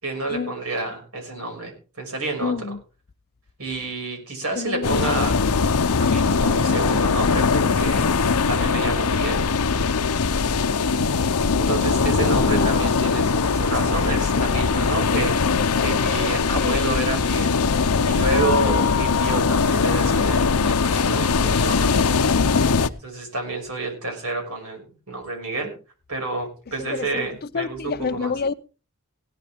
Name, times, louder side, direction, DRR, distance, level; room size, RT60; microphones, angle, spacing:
voice 1, 0.0-2.8 3.6-5.4 6.0-9.4 11.6-17.6 18.0-21.9 23.0-24.8 25.1-25.7 26.1-28.3, right 2 dB, 70° right, 5.8 m, -29 dB
voice 2, 2.4-2.8 4.6-5.3 6.4-6.7 12.4-12.9 15.5-16.8 18.5-18.9 22.4-22.8 26.8-28.5, left 4 dB, 45° left, 0.6 m, -29 dB
sound 1, 4.8-22.9, left 5 dB, 90° left, 0.7 m, -21 dB
17.0 x 11.5 x 3.5 m
head